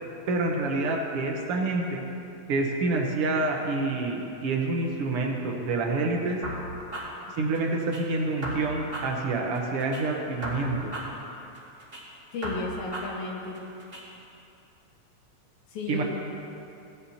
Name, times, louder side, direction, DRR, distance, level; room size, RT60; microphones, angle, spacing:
voice 1, 0.3-2.0 2.5-6.4 7.4-10.9 15.9-16.0, right 3 dB, 60° right, 1 dB, 1.8 m, -27 dB
sound 1, 6.4-8.0 8.4-10.0 10.4-12.0 12.4-14.0, equal, 20° right, 2.1 m, -37 dB
voice 2, 12.3-13.6 15.7-16.0, left 3 dB, 80° left, -2 dB, 2.9 m, -33 dB
17.0 x 11.0 x 2.9 m, 2.7 s
omnidirectional pair, 3.4 m